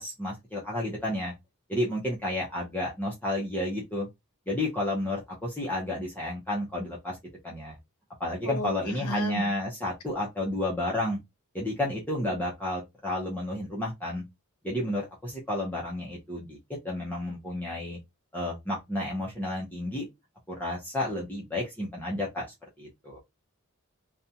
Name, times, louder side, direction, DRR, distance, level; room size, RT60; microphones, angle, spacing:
voice 1, 0.0-1.3 1.7-4.1 4.5-7.2 7.4-7.8 8.2-11.2 11.5-14.2 14.6-16.6 16.8-18.0 18.3-20.1 20.5-22.5 22.8-23.2, left 1 dB, 10° left, 0.5 m, -31 dB
voice 2, 8.4-9.5, left 1 dB, 80° left, 0.6 m, -34 dB
2.5 x 2.1 x 2.7 m
head